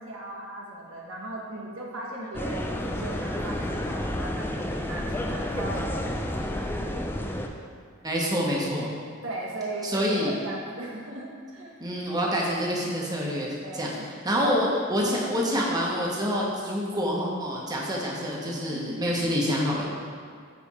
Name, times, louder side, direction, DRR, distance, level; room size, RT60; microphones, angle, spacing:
voice 1, 0.0-6.1 9.2-11.7 13.6-13.9 14.3-14.8 15.1-15.4 18.5-19.0, right 2 dB, 70° right, -3 dB, 1.3 m, -37 dB
sound 1, 2.3-7.5, left 1 dB, 10° left, 0.4 m, -30 dB
voice 2, 8.0-8.9 9.8-10.3 11.8-14.0 14.2-19.8, equal, 20° right, -3 dB, 1.0 m, -27 dB
9.2 x 3.4 x 4.2 m, 2.1 s
head